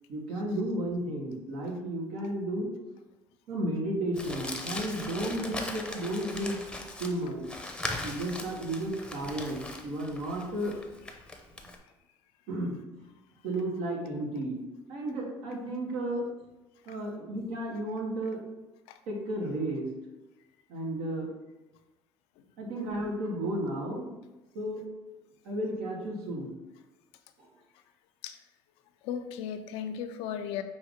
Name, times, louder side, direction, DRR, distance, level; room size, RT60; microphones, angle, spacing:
voice 1, 0.1-2.7 3.5-6.6 7.0-7.4 8.0-10.8 11.6-11.7 12.5-12.7 13.4-14.6 14.9-16.3 16.9-18.6 19.1-19.9 20.7-21.3 22.6-24.1 24.5-24.8 25.4-26.5 27.4-27.5, right 1 dB, 80° right, -1 dB, 1.2 m, -33 dB
Crumpling crinkling, 4.1-11.8, left 2 dB, 10° left, 0.6 m, -39 dB
voice 2, 29.0-30.6, left 8 dB, 85° left, 8 dB, 0.4 m, -35 dB
5.4 x 2.6 x 3.6 m, 1.0 s
supercardioid pair, 90°, 10 cm